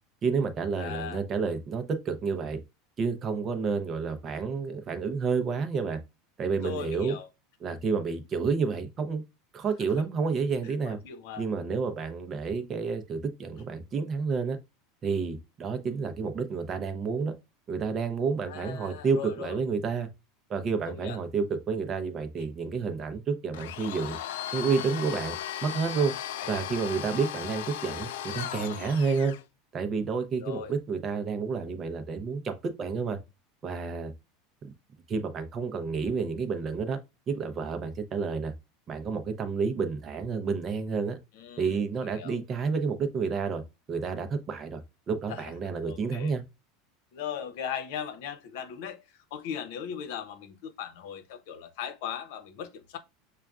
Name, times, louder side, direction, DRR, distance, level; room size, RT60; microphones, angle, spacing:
voice 1, 0.2-2.6 3.0-6.0 6.4-7.2 7.6-9.2 9.5-11.0 11.4-14.6 15.0-17.3 17.7-20.1 20.5-24.2 24.5-25.4 25.6-26.1 26.5-29.3 29.7-33.2 33.6-34.1 35.1-37.0 37.3-38.5 38.9-41.2 41.6-43.6 43.9-44.8 45.1-46.4, right 5 dB, 25° right, 0.6 m, -30 dB
voice 2, 0.8-1.2 6.6-7.3 9.8-10.1 10.6-11.5 18.5-19.6 20.9-21.2 26.4-26.7 30.4-30.7 41.3-42.4 45.3-46.3 47.1-53.0, left 8 dB, 65° left, 0.8 m, -39 dB
Domestic sounds home sounds, 23.5-29.4, left 11 dB, 85° left, 0.4 m, -36 dB
6.4 x 2.3 x 2.4 m
supercardioid pair, 165°, 0 cm